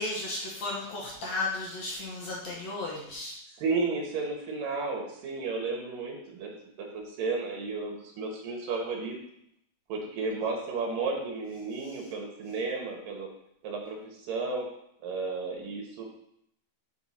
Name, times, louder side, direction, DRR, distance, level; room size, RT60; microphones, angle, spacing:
voice 1, 0.0-3.4, left 2 dB, 60° left, -2 dB, 2.1 m, -34 dB
voice 2, 3.6-6.5 6.8-9.2 9.9-13.3 13.6-14.7 15.0-16.1, right 4 dB, 75° right, 0 dB, 3.0 m, -33 dB
9.1 x 5.0 x 4.3 m, 0.74 s
omnidirectional pair, 4.1 m